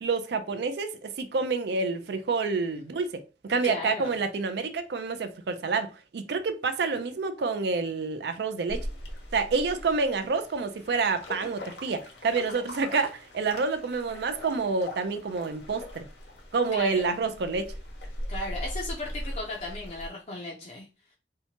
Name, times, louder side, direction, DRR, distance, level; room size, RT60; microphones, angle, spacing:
voice 1, 0.0-8.9 9.3-16.1 16.5-17.7, right 4 dB, 65° right, 0.4 m, -28 dB
voice 2, 3.6-4.1 16.7-17.1 18.3-20.9, left 2 dB, 35° left, 0.4 m, -35 dB
sound 1, 8.7-20.1, equal, 70° left, 0.8 m, -40 dB
2.7 x 2.1 x 2.7 m
head